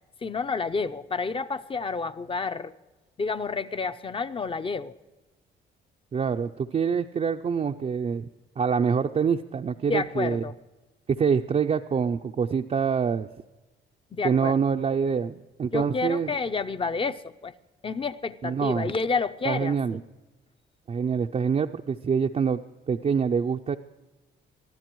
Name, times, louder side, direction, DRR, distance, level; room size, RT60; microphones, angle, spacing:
voice 1, 0.2-2.7 3.2-4.9 9.9-10.5 14.1-14.6 15.7-17.5 17.8-20.0, left 4 dB, 25° left, 12 dB, 0.6 m, -29 dB
voice 2, 6.1-8.3 8.6-10.4 11.1-13.3 14.2-16.3 18.4-18.9 19.5-20.0 20.9-22.6 22.9-23.8, right 6 dB, 35° right, 3 dB, 0.5 m, -25 dB
24.0 x 14.0 x 3.1 m, 1.2 s
cardioid pair, 90°, 20 cm